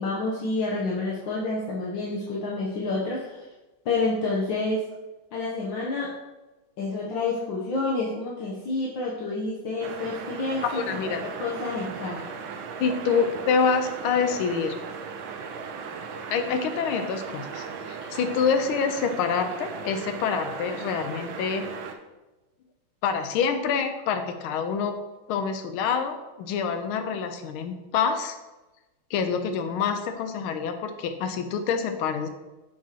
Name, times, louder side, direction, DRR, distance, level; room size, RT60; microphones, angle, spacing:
voice 1, 0.0-3.4 3.9-4.8 5.3-6.1 6.8-12.3, left 3 dB, 70° left, -4 dB, 1.6 m, -29 dB
sound 1, 9.8-21.9, right 5 dB, 75° right, 1.4 m, -37 dB
voice 2, 10.6-11.2 12.8-14.8 16.3-21.7 23.0-25.0 25.3-28.3 29.1-32.3, left 6 dB, 90° left, 8 dB, 1.5 m, -26 dB
7.5 x 6.1 x 2.9 m, 1.1 s
omnidirectional pair, 2.2 m